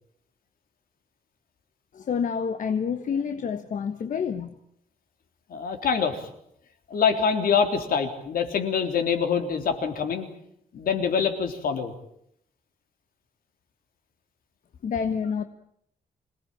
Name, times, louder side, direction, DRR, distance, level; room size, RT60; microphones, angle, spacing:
voice 1, 1.9-4.5 14.8-15.4, left 6 dB, 60° left, 8 dB, 1.4 m, -28 dB
voice 2, 5.5-6.3 6.9-10.3 10.7-11.9, left 6 dB, 75° left, 6 dB, 3.5 m, -25 dB
26.5 x 18.5 x 8.9 m, 0.73 s
wide cardioid pair, 170°, 15 cm